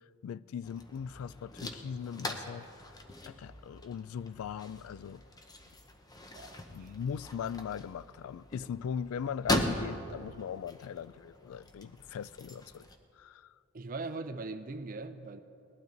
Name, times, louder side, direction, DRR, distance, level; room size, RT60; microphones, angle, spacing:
voice 1, 0.2-3.0 3.2-5.2 6.4-12.9 13.1-13.5, left 7 dB, 85° left, 0.3 m, -40 dB
sound 1, 0.6-13.0, left 1 dB, 20° left, 0.9 m, -40 dB
voice 2, 6.3-6.9 13.7-15.4, right 3 dB, 40° right, 0.5 m, -40 dB
19.5 x 12.0 x 4.0 m
head